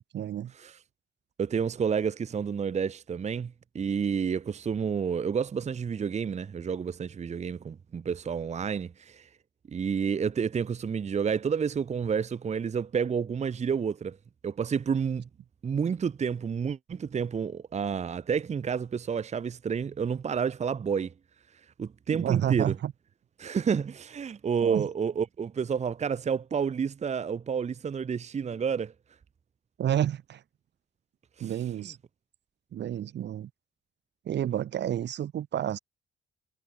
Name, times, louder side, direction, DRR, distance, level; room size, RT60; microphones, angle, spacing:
voice 1, 0.1-0.5 22.1-22.9 24.6-24.9 29.8-30.4 31.4-32.0 32.7-33.5 34.2-35.8, right 10 dB, 60° right, 1.1 m, -30 dB
voice 2, 1.4-9.3 9.7-14.2 14.4-15.3 15.6-21.1 21.8-22.7 23.4-28.9 31.4-31.5 31.8-31.9, right 6 dB, 35° right, 0.8 m, -30 dB
cardioid pair, 90°, 20 cm